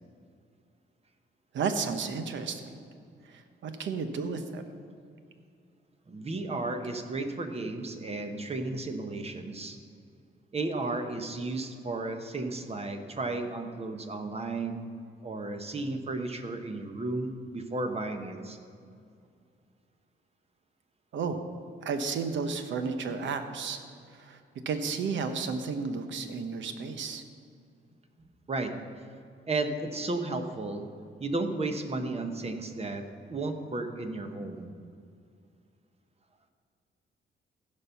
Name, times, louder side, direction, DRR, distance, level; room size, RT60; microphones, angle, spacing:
voice 1, 1.5-2.7 3.2-4.6 21.1-21.4 21.8-23.8 24.1-24.4 24.6-27.2, right 5 dB, 75° right, 8 dB, 1.0 m, -32 dB
voice 2, 6.1-9.8 10.5-14.9 15.2-18.6 28.5-28.7 29.5-30.9 31.2-33.0 33.3-34.7, right 2 dB, 30° right, 6 dB, 1.0 m, -33 dB
15.5 x 5.4 x 5.7 m, 2.4 s
cardioid pair, 110°, 19 cm